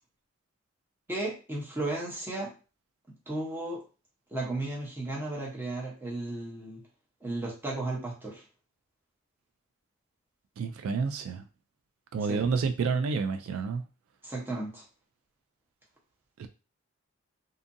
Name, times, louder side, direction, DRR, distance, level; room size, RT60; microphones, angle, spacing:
voice 1, 1.1-2.5 3.3-3.8 4.3-6.8 7.2-8.4 12.3-12.4 14.2-14.8, right 2 dB, 10° right, 0.7 m, -34 dB
voice 2, 10.6-11.4 12.1-13.8 16.4-16.5, right 5 dB, 80° right, 0.3 m, -29 dB
2.7 x 2.5 x 2.5 m
head